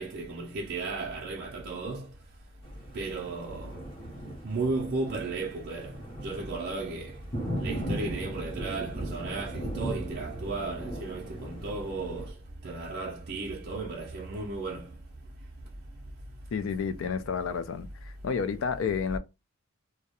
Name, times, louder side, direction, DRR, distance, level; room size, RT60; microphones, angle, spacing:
voice 1, 0.0-2.1 2.9-3.8 4.4-7.1 7.6-12.3 12.6-14.9, right 3 dB, 50° right, 0.4 m, -34 dB
Thunder, 2.6-12.3, equal, 25° left, 0.7 m, -38 dB
voice 2, 16.5-19.2, left 6 dB, 65° left, 0.3 m, -30 dB
2.2 x 2.0 x 2.8 m
head